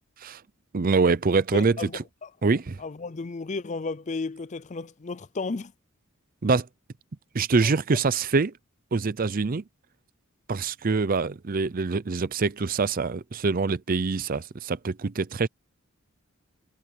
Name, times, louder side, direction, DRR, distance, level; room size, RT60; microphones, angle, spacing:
voice 1, 0.7-2.0 2.4-2.8 6.4-6.7 7.3-8.5 8.9-9.6 10.5-15.5, right 4 dB, 40° right, 0.5 m, -25 dB
voice 2, 1.5-2.3 2.8-5.7 7.6-7.7, left 3 dB, 35° left, 0.5 m, -33 dB
head